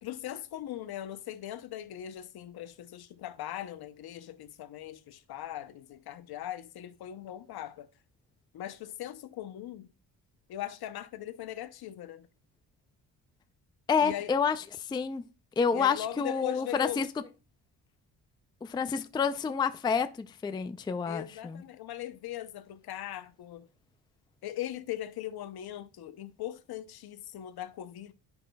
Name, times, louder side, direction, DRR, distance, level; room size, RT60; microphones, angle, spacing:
voice 1, 0.0-7.9 8.5-9.9 10.5-12.3 14.0-14.3 15.7-17.0 21.1-23.7 24.4-28.1, left 12 dB, 60° left, 0.7 m, -40 dB
voice 2, 13.9-15.2 15.6-17.1 18.6-21.6, left 6 dB, 10° left, 0.3 m, -29 dB
10.5 x 5.1 x 2.2 m
cardioid pair, 85°, 42 cm